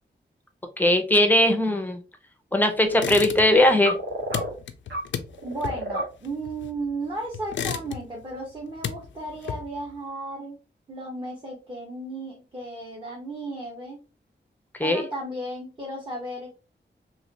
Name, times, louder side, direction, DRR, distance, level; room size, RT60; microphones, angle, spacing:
voice 1, 0.8-2.0 2.5-3.9 14.8-15.0, left 1 dB, 10° left, 6 dB, 0.6 m, -19 dB
sound 1, 2.9-3.7 4.0-6.9 7.3-8.3 8.6-9.9, left 8 dB, 80° left, 0.4 m, -33 dB
sound 2, 3.8-4.5 4.9-5.0 5.3-6.1, right 1 dB, 80° right, 1.4 m, -30 dB
voice 2, 5.4-10.6 10.9-14.0 14.8-16.5, right 2 dB, 25° right, -3 dB, 0.9 m, -34 dB
3.1 x 2.9 x 2.8 m, 0.31 s
wide cardioid pair, 140°, 19 cm